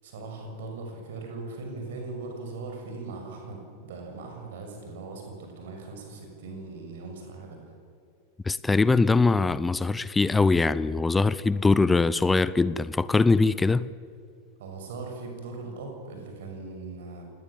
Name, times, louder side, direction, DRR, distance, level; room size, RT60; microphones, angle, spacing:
voice 1, 0.0-7.7 13.5-13.6 14.6-17.2, right 3 dB, 55° right, 6.3 m, -39 dB
voice 2, 8.4-13.9, left 3 dB, 10° left, 0.6 m, -22 dB
28.5 x 19.0 x 7.4 m
figure-of-eight pair, 90°, 0 cm